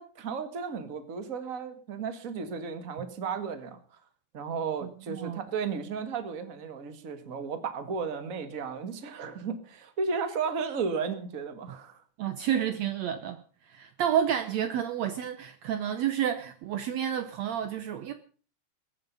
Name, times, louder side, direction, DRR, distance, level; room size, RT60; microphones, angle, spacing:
voice 1, 0.0-3.8 4.3-12.0, right 5 dB, 40° right, 1.3 m, -34 dB
voice 2, 4.8-5.4 12.2-13.4 13.7-18.1, right 9 dB, 85° right, 1.5 m, -30 dB
22.0 x 9.3 x 5.4 m
omnidirectional pair, 4.3 m